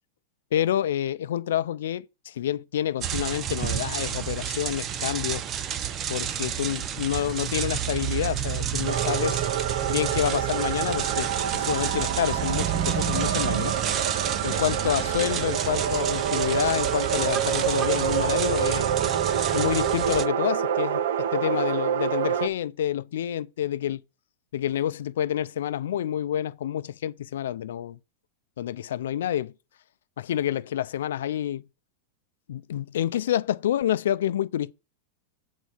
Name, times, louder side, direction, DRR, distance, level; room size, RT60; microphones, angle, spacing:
voice 1, 0.5-5.4 6.1-9.4 9.9-13.7 14.4-18.9 19.5-24.0 24.5-28.0 28.6-29.5 30.2-31.6 32.5-34.7, left 11 dB, 80° left, 0.5 m, -28 dB
sound 1, 3.0-20.3, right 9 dB, 20° right, 0.5 m, -30 dB
sound 2, 8.8-22.5, right 9 dB, 65° right, 0.6 m, -27 dB
8.3 x 4.0 x 6.2 m
supercardioid pair, 175°, 0 cm